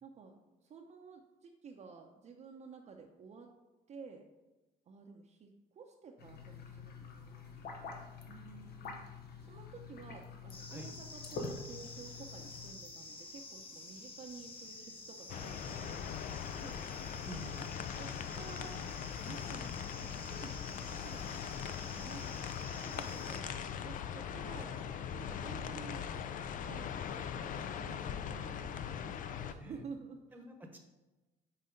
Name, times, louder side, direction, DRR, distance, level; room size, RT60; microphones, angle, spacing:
voice 1, 0.0-3.5 3.9-4.2 4.9-7.7 8.3-9.0 9.4-16.8 18.0-18.8 19.2-20.6 20.9-22.3 22.8-24.8 25.1-26.0 26.7-26.9 27.5-30.5, right 5 dB, 40° right, 2 dB, 0.7 m, -52 dB
sound 1, 6.2-12.7, left 4 dB, 70° left, 1.0 m, -47 dB
sound 2, 10.5-23.4, left 2 dB, 30° left, 1.1 m, -50 dB
sound 3, 15.3-29.5, left 8 dB, 50° left, 0.4 m, -41 dB
voice 2, 17.2-17.6 29.6-29.8 30.3-30.8, equal, 10° right, 3 dB, 1.0 m, -48 dB
5.7 x 4.2 x 5.2 m, 1.1 s
cardioid pair, 110°, 17 cm